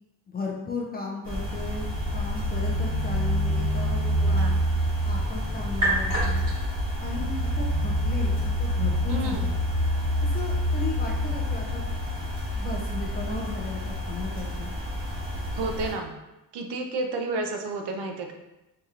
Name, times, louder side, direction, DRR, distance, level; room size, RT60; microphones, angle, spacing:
voice 1, 0.3-1.9 2.1-4.6 5.0-6.4 7.0-9.6 10.2-11.9 12.5-14.7, left 3 dB, 25° left, -1 dB, 0.4 m, -35 dB
sound 1, 1.2-15.9, equal, 40° right, 1.4 m, -27 dB
voice 2, 4.2-4.6 9.1-9.4 15.5-16.1 16.5-18.3, right 2 dB, 80° right, 4 dB, 0.6 m, -31 dB
4.6 x 2.8 x 2.4 m, 0.96 s
wide cardioid pair, 180°, 40 cm